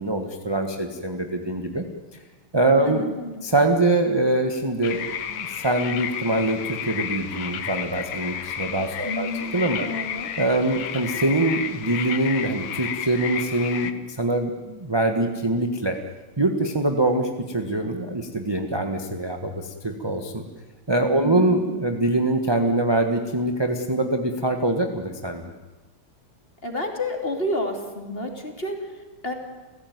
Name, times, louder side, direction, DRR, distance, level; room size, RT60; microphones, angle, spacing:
voice 1, 0.0-1.8 2.5-3.1 3.4-9.8 10.4-16.0 16.4-20.4 20.9-25.5, right 2 dB, 15° right, 4 dB, 1.2 m, -24 dB
voice 2, 2.7-3.4 9.0-9.5 9.8-10.3 21.1-21.6 26.6-29.3, left 1 dB, 25° left, 3 dB, 3.2 m, -30 dB
sound 1, 4.8-13.9, left 8 dB, 85° left, 2.1 m, -32 dB
29.5 x 16.0 x 9.5 m, 1.2 s
omnidirectional pair, 2.4 m